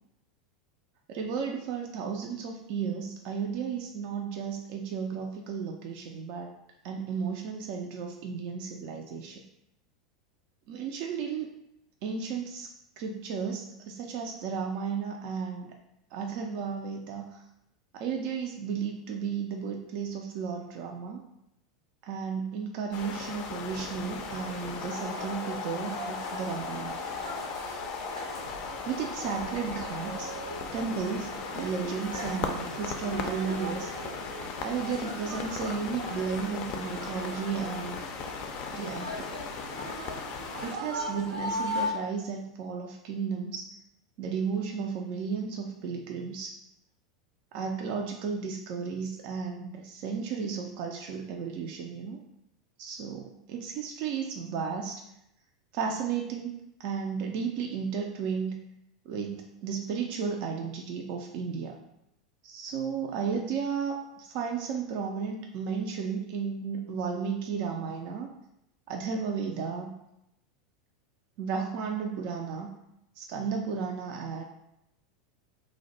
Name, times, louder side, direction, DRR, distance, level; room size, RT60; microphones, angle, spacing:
voice 1, 1.1-6.5 6.8-9.4 10.7-11.5 12.0-12.7 13.0-15.7 16.1-17.4 17.9-21.2 22.0-27.0 27.6-27.8 28.8-30.3 30.7-33.9 34.6-38.0 38.7-39.3 40.6-43.7 44.2-46.6 47.5-52.2 52.8-55.0 55.7-58.6 59.1-61.8 62.4-68.3 68.9-69.9 71.4-72.8 73.2-74.4, right 6 dB, 50° right, 2 dB, 0.3 m, -34 dB
sound 1, 22.9-40.8, left 5 dB, 45° left, 0.4 m, -37 dB
sound 2, 24.0-41.9, right 1 dB, 85° right, 0.7 m, -39 dB
2.5 x 2.1 x 3.9 m, 0.82 s
figure-of-eight pair, 85°, 3 cm